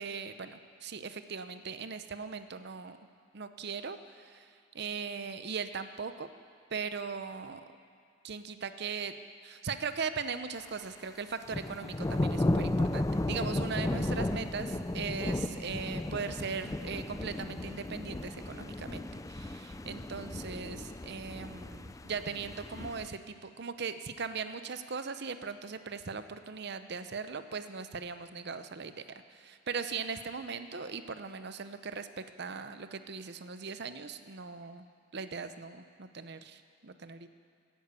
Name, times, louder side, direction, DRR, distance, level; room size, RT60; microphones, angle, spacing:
voice 1, 0.0-3.0 3.3-6.3 6.7-7.6 8.2-9.2 9.4-29.0 29.3-34.9 35.1-37.3, right 5 dB, 55° right, 10 dB, 0.7 m, -39 dB
sound 1, 11.5-23.1, left 1 dB, 15° left, 0.4 m, -34 dB
17.0 x 10.0 x 8.2 m, 2.3 s
head